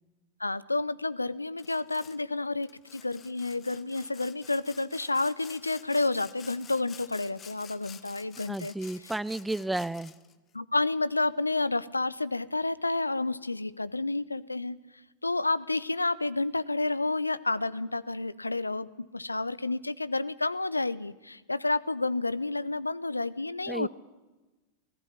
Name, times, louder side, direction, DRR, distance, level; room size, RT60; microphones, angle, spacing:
voice 1, 0.4-8.7 10.5-14.8 15.2-18.9 19.1-23.9, left 2 dB, 80° left, 19 dB, 0.7 m, -30 dB
Sawing, 1.6-2.2 2.6-10.3, left 8 dB, 25° left, 1.1 m, -50 dB
voice 2, 8.5-10.1 23.7-23.9, right 2 dB, 5° right, 18 dB, 0.6 m, -32 dB
19.0 x 15.5 x 9.8 m, 1.1 s
figure-of-eight pair, 90°, 0 cm